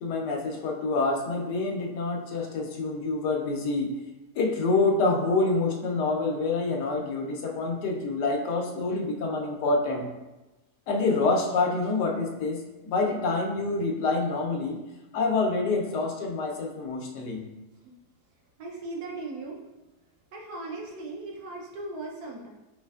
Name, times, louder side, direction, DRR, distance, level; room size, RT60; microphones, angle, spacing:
voice 1, 0.0-3.9 4.4-10.1 10.9-14.8 15.1-17.4, left 3 dB, 90° left, 1 dB, 1.3 m, -27 dB
voice 2, 18.6-19.6 20.3-22.5, right 2 dB, 70° right, -1 dB, 1.2 m, -38 dB
5.1 x 3.1 x 2.3 m, 1.0 s
omnidirectional pair, 1.7 m